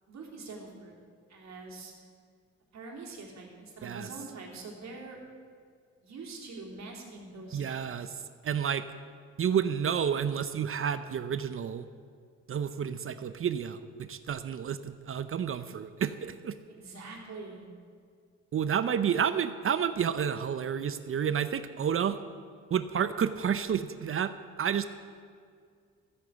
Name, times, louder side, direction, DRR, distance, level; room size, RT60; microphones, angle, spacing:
voice 1, 0.1-0.9 1.3-1.9 2.7-5.2 6.0-8.1 16.7-17.7, right 3 dB, 65° right, -1 dB, 3.4 m, -44 dB
voice 2, 7.5-8.1 8.4-8.8 9.4-11.9 12.5-16.6 18.5-22.2 22.7-24.9, right 8 dB, 45° right, 12 dB, 0.7 m, -30 dB
14.5 x 8.4 x 8.2 m, 2.2 s
cardioid pair, 90°, 30 cm